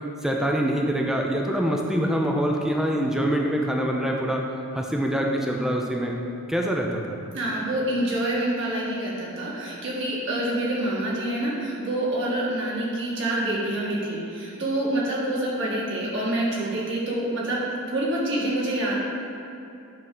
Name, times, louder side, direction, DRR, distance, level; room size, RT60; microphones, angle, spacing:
voice 1, 0.2-4.4 4.7-6.1 6.5-7.2, equal, ahead, 0 dB, 0.5 m, -25 dB
voice 2, 7.3-17.6 17.9-18.9, right 1 dB, 55° right, -5 dB, 1.7 m, -27 dB
9.2 x 3.6 x 6.0 m, 2.7 s
head